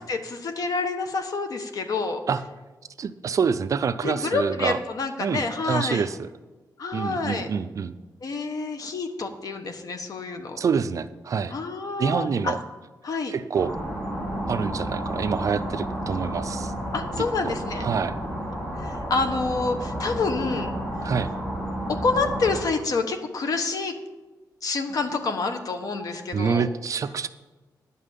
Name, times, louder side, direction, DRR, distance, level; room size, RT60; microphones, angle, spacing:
voice 1, 0.1-2.2 4.0-6.1 6.8-7.5 8.2-10.6 11.5-12.5 13.0-13.3 16.9-17.9 18.8-20.7 21.9-23.9 24.6-26.6, left 3 dB, 60° left, 7 dB, 1.1 m, -28 dB
voice 2, 3.0-4.8 5.2-6.3 6.9-7.9 10.6-11.5 12.0-12.6 13.3-13.7 14.5-16.7 17.4-18.2 21.0-21.3 26.3-27.3, right 6 dB, 50° right, 12 dB, 0.5 m, -26 dB
sound 1, 13.6-22.6, equal, 20° left, 2.9 m, -31 dB
10.5 x 5.6 x 8.2 m, 1.2 s
wide cardioid pair, 135°, 7 cm